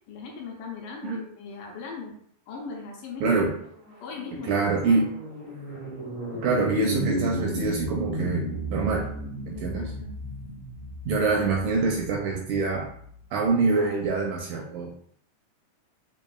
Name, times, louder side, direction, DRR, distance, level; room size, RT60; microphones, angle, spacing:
voice 1, 0.1-2.2 2.5-3.3 4.0-5.0 9.5-10.1, left 4 dB, 80° left, 0 dB, 2.2 m, -39 dB
voice 2, 3.2-3.6 4.4-5.1 6.4-9.1 9.5-9.9 11.0-12.9 13.3-14.9, right 3 dB, 80° right, 0 dB, 1.8 m, -25 dB
sound 1, 3.5-13.1, right 1 dB, 45° right, 0.6 m, -34 dB
6.6 x 2.5 x 2.3 m, 0.66 s
omnidirectional pair, 4.0 m